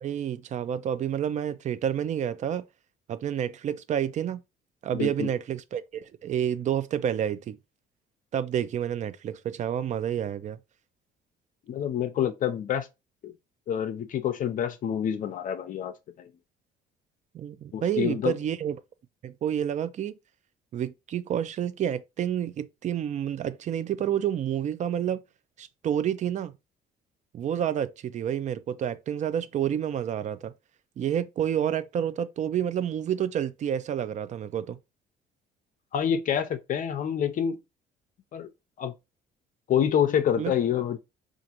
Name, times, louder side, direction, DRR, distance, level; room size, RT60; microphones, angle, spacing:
voice 1, 0.0-2.6 3.1-4.4 4.8-7.6 8.3-10.6 17.3-18.8 19.2-20.2 20.7-25.2 25.6-26.5 27.3-30.5 31.0-34.8 40.4-40.5, right 9 dB, 45° right, 0.4 m, -29 dB
voice 2, 4.9-5.3 11.7-12.9 13.2-13.3 13.7-16.3 17.7-18.4 35.9-37.6 38.3-38.5 38.8-38.9 39.7-41.0, left 9 dB, 50° left, 0.6 m, -27 dB
5.0 x 2.5 x 2.8 m
cardioid pair, 110°, 17 cm